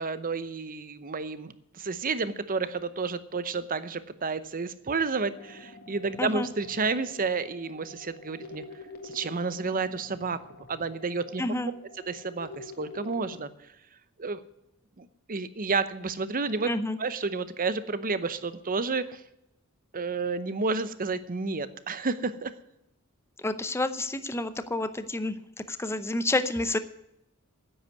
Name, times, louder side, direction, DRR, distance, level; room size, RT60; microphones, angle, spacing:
voice 1, 0.0-8.6 9.0-10.4 10.7-11.4 12.1-13.5 14.2-14.4 15.0-16.7 17.0-19.2 19.9-22.5, right 4 dB, 40° right, 14 dB, 0.8 m, -31 dB
sound 1, 5.4-13.4, left 3 dB, 45° left, 1.7 m, -47 dB
voice 2, 11.4-11.7 16.7-17.0 23.4-25.4 25.7-26.8, left 2 dB, 10° left, 11 dB, 0.6 m, -29 dB
9.8 x 8.1 x 9.3 m, 0.84 s
head